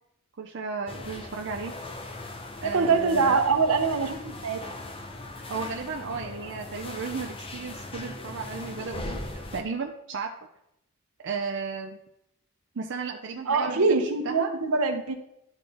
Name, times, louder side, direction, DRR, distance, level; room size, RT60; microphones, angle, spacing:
voice 1, 0.4-1.7 2.6-3.4 5.5-9.2 9.5-10.3 11.2-12.0 12.7-14.5, right 4 dB, 55° right, 3 dB, 0.5 m, -34 dB
sound 1, 0.9-9.6, left 2 dB, 25° left, 0.7 m, -39 dB
voice 2, 2.6-4.6 13.5-15.1, right 4 dB, 75° right, 6 dB, 0.9 m, -24 dB
11.5 x 4.1 x 3.5 m, 0.80 s
head